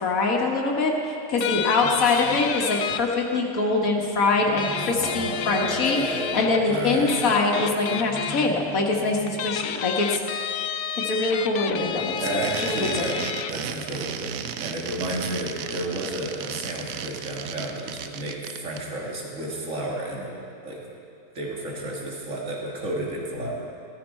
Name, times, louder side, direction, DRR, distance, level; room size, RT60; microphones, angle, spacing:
voice 1, 0.0-10.2 11.0-13.0, left 3 dB, 85° left, 0 dB, 1.8 m, -24 dB
sound 1, 1.4-3.0 4.6-6.6 7.1-8.5 9.3-13.5, left 9 dB, 65° left, 0.5 m, -31 dB
voice 2, 1.8-2.4 4.8-7.2 12.2-13.2 13.5-20.4 20.6-20.9 21.3-23.7, right 1 dB, 65° right, -3 dB, 2.4 m, -32 dB
sound 2, 4.3-9.7, right 2 dB, 5° right, 0.5 m, -38 dB
sound 3, 12.1-18.8, right 9 dB, 90° right, 1.1 m, -34 dB
14.5 x 14.5 x 4.3 m, 2.5 s
omnidirectional pair, 1.4 m